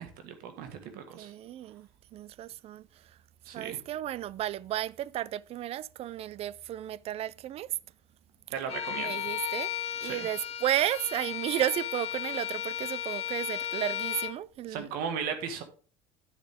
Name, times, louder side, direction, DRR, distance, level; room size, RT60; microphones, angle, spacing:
voice 1, 0.0-1.3 3.4-3.8 8.5-9.1 10.0-10.3 14.7-15.6, right 7 dB, 70° right, 1.7 m, -36 dB
voice 2, 0.8-3.2 3.5-7.8 8.9-9.7 10.0-14.9, right 12 dB, 40° right, 0.4 m, -33 dB
Bowed string instrument, 8.7-14.4, left 10 dB, 40° left, 1.0 m, -35 dB
11.0 x 6.7 x 3.5 m
cardioid pair, 115°, 15 cm